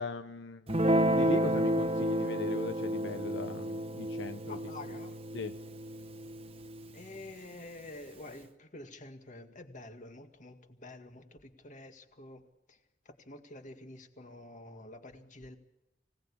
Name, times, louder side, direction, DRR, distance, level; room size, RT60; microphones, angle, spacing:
voice 1, 0.0-4.6 5.3-5.5, left 3 dB, 75° left, 0.8 m, -39 dB
Guitar, 0.7-7.3, right 1 dB, 35° right, 1.1 m, -31 dB
voice 2, 4.5-5.2 6.9-12.4 12.7-12.8 13.1-15.6, left 2 dB, 45° left, 2.0 m, -48 dB
24.5 x 18.0 x 8.6 m
head